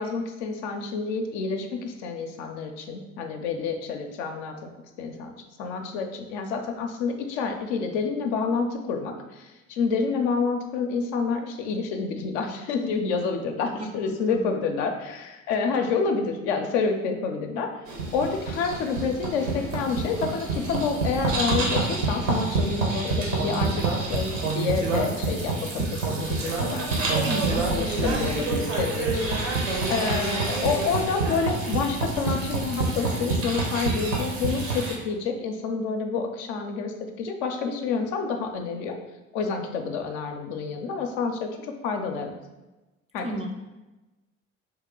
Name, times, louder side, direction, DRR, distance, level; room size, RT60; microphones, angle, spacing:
voice 1, 0.0-4.7 5.0-5.3 5.6-17.7 18.1-27.2 27.7-29.6 29.9-36.9 37.2-39.0 39.3-41.5 41.8-42.3 43.1-43.5, left 5 dB, 60° left, 4 dB, 0.6 m, -28 dB
sound 1, 17.9-34.9, right 3 dB, 80° right, 0.9 m, -27 dB
voice 2, 27.2-27.6 28.0-28.5 43.2-43.5, right 1 dB, 20° right, 1 dB, 0.4 m, -31 dB
3.1 x 2.9 x 3.6 m, 1.1 s
figure-of-eight pair, 55°, 38 cm